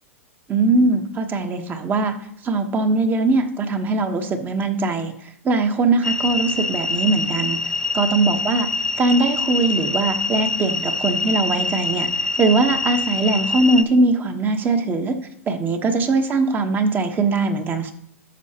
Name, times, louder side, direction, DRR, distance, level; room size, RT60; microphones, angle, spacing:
voice 1, 0.5-2.1 2.4-5.1 5.4-7.6 7.9-8.7 9.0-12.1 12.4-15.1 15.5-17.9, right 3 dB, 25° right, 7 dB, 1.0 m, -20 dB
sound 1, 6.0-13.8, left 3 dB, 5° left, 0.5 m, -25 dB
11.5 x 6.5 x 2.9 m, 0.70 s
hypercardioid pair, 110°, 8 cm